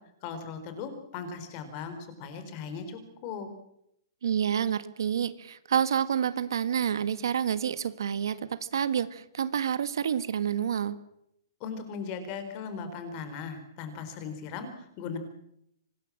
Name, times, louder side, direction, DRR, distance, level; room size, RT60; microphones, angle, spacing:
voice 1, 0.2-3.5 11.6-15.2, left 5 dB, 30° left, 9 dB, 4.0 m, -38 dB
voice 2, 4.2-10.9, right 8 dB, 75° right, 13 dB, 1.6 m, -28 dB
25.5 x 20.0 x 7.5 m, 0.77 s
hypercardioid pair, 170°, 2 cm